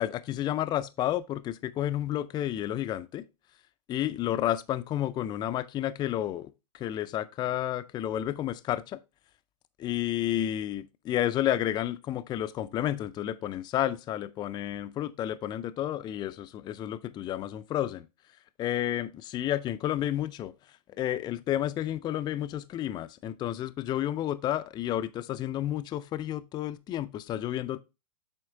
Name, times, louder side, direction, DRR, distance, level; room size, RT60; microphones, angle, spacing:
voice 1, 0.0-3.2 3.9-6.5 6.7-9.0 9.8-18.1 18.6-20.5 21.0-27.8, left 12 dB, 20° left, 0.4 m, -31 dB
8.0 x 4.3 x 3.7 m
hypercardioid pair, 115°, 20 cm